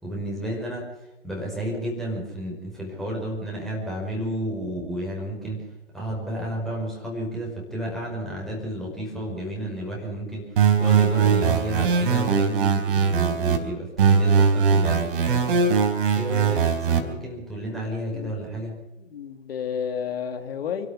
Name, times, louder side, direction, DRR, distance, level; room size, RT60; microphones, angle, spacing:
voice 1, 0.0-0.9 1.2-5.6 5.9-10.5 10.8-15.7 16.2-18.8, right 1 dB, ahead, -3 dB, 5.2 m, -31 dB
sound 1, 10.6-13.6 14.0-17.0, right 6 dB, 45° right, 3.9 m, -20 dB
voice 2, 18.1-18.5 19.0-20.9, left 7 dB, 50° left, 7 dB, 3.2 m, -31 dB
27.5 x 12.5 x 8.6 m, 0.96 s
figure-of-eight pair, 135°, 38 cm